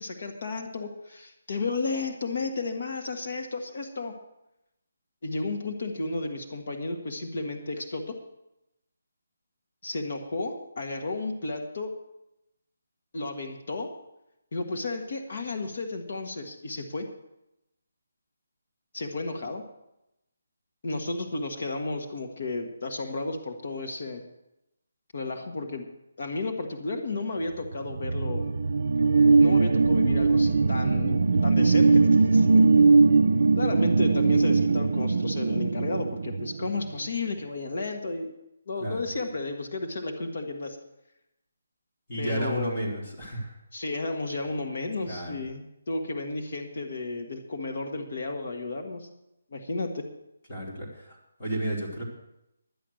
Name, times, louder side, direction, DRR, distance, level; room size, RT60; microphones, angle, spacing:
voice 1, 0.0-4.1 5.2-8.2 9.8-11.9 13.1-13.9 14.5-17.1 18.9-19.6 20.8-24.2 25.1-25.9 26.2-28.5 29.4-32.5 33.5-38.3 38.7-40.8 42.2-43.0 43.7-45.6 45.9-49.1 49.5-50.0, left 3 dB, 45° left, 4 dB, 1.4 m, -33 dB
sound 1, 27.7-37.0, right 4 dB, 65° right, 0.4 m, -21 dB
voice 2, 42.1-43.6 45.0-45.3 50.5-52.0, right 1 dB, 20° left, -5 dB, 2.8 m, -32 dB
11.0 x 10.0 x 6.4 m, 0.87 s
hypercardioid pair, 175°, 0 cm